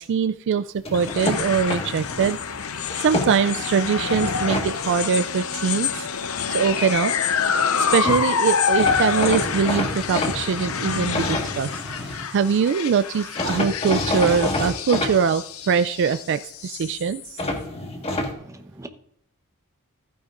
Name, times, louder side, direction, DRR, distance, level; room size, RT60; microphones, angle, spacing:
voice 1, 0.0-2.4 3.0-5.9 6.5-7.1 7.8-11.7 12.0-17.4, right 6 dB, 55° right, 0.3 m, -22 dB
sound 1, 0.9-17.4, left 6 dB, 70° left, 0.7 m, -27 dB
sound 2, 0.9-2.3 2.8-3.6 4.1-4.7 7.8-7.9 8.0-8.2 8.8-12.3 13.4-15.1 17.4-18.3, left 2 dB, 25° left, 1.6 m, -28 dB
voice 2, 18.1-18.9, right 1 dB, 15° right, 0.9 m, -43 dB
15.0 x 9.3 x 2.5 m
head